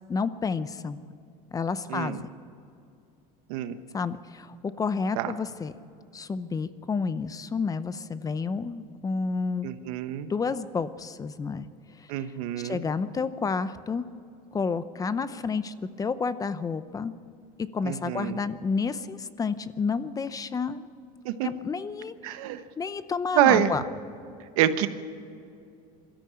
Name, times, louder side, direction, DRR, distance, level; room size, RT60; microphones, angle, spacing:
voice 1, 0.1-1.0 1.5-2.3 3.9-5.7 6.1-9.7 10.3-11.6 12.0-12.3 12.6-14.1 14.5-17.1 17.6-20.9 21.4-22.4 22.8-23.8, left 5 dB, 20° left, 14 dB, 0.7 m, -30 dB
voice 2, 1.9-2.2 3.5-3.8 5.2-5.3 9.6-10.3 12.1-12.8 17.8-18.4 21.2-21.5 22.2-22.6 23.3-23.7 24.6-24.9, right 12 dB, 85° right, 10 dB, 1.2 m, -26 dB
22.5 x 13.0 x 8.8 m, 2.6 s
cardioid pair, 130°, 18 cm